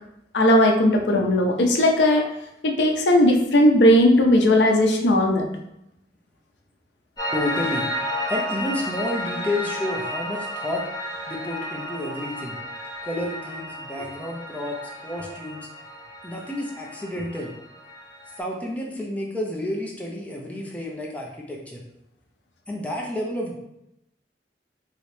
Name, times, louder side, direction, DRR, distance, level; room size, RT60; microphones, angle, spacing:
voice 1, 0.3-2.3 2.6-5.5, left 1 dB, 75° left, 2 dB, 0.5 m, -17 dB
Piano, 7.2-18.4, equal, 25° left, 1.5 m, -32 dB
voice 2, 7.3-7.9 8.3-10.8 11.3-12.6 13.0-15.7 16.2-17.5 18.4-21.8 22.7-23.6, left 1 dB, 10° left, -2 dB, 0.5 m, -30 dB
3.1 x 2.8 x 3.1 m, 0.82 s
head